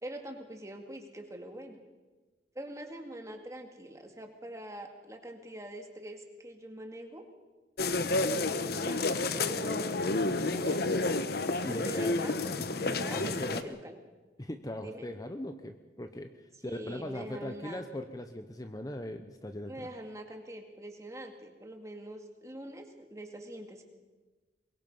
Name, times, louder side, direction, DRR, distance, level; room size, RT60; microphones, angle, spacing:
voice 1, 0.0-1.8 2.5-7.3 8.3-9.0 9.3-11.3 11.7-12.5 12.8-13.9 14.8-15.1 16.6-17.8 19.6-23.8, right 1 dB, 15° right, 4 dB, 2.2 m, -44 dB
sound 1, 7.8-13.6, left 3 dB, 55° left, 1.0 m, -30 dB
voice 2, 11.6-12.2 12.6-13.8 14.4-19.9, left 1 dB, 20° left, 7 dB, 0.9 m, -40 dB
23.0 x 22.0 x 5.6 m, 1.3 s
head